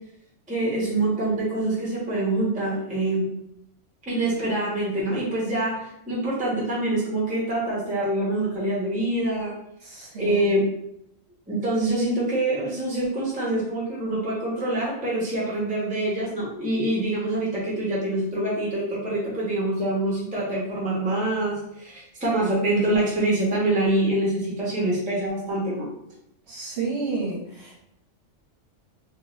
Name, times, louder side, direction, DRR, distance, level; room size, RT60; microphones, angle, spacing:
voice 1, 0.5-3.3 4.1-9.5 10.2-10.6 11.5-25.9, right 1 dB, 10° right, -5 dB, 0.6 m, -25 dB
voice 2, 9.8-10.4 26.5-27.8, right 3 dB, 60° right, -3 dB, 0.9 m, -31 dB
2.6 x 2.4 x 3.0 m, 0.76 s
omnidirectional pair, 1.4 m